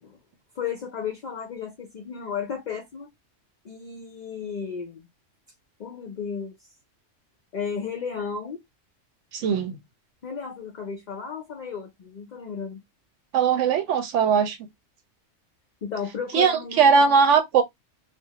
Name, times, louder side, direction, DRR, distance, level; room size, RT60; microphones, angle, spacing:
voice 1, 0.6-3.1 3.6-5.1 5.8-6.7 7.5-8.6 10.2-12.8 15.8-17.2, left 6 dB, 60° left, 0.5 m, -34 dB
voice 2, 9.3-9.8 13.3-14.6 16.3-17.6, right 6 dB, 75° right, 0.9 m, -20 dB
2.5 x 2.0 x 2.8 m
omnidirectional pair, 1.3 m